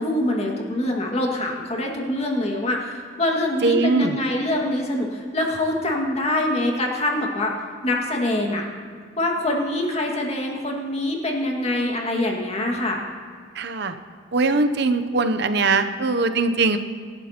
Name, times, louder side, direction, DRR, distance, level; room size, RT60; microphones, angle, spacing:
voice 1, 0.0-7.5 7.8-8.6 9.2-13.0, left 1 dB, 35° left, 0 dB, 2.0 m, -24 dB
voice 2, 3.6-4.1 13.6-13.9 14.3-16.8, right 3 dB, 60° right, 9 dB, 0.7 m, -21 dB
26.0 x 11.5 x 2.9 m, 2.1 s
head